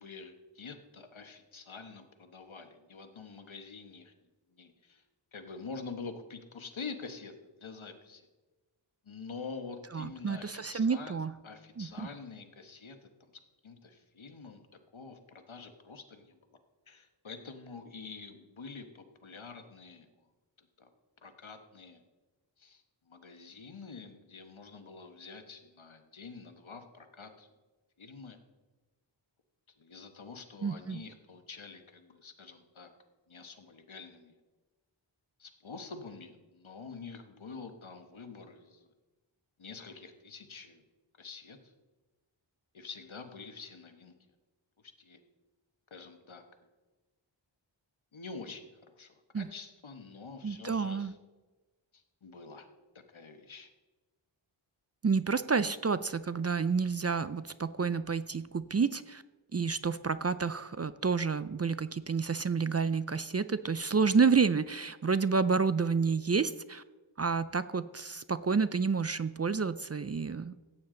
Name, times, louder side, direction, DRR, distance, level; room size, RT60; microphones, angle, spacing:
voice 1, 0.0-4.1 4.5-5.0 5.3-8.3 9.0-11.2 11.4-13.3 13.6-14.6 14.9-16.4 16.9-20.1 20.6-20.9 21.2-22.0 22.6-27.5 28.0-28.4 29.8-32.9 33.3-34.4 35.4-38.9 39.6-40.8 41.2-41.7 42.7-44.1 44.8-45.2 45.9-46.4 48.1-51.2 51.9-52.7 53.1-53.7, left 4 dB, 75° left, 7 dB, 1.2 m, -47 dB
voice 2, 9.9-11.3 11.8-12.1 30.6-31.0 49.3-49.5 50.4-51.1 55.0-59.2 59.5-66.8 67.2-70.5, right 5 dB, 35° right, 15 dB, 0.4 m, -29 dB
14.5 x 9.1 x 3.8 m, 1.2 s
wide cardioid pair, 45°, 48 cm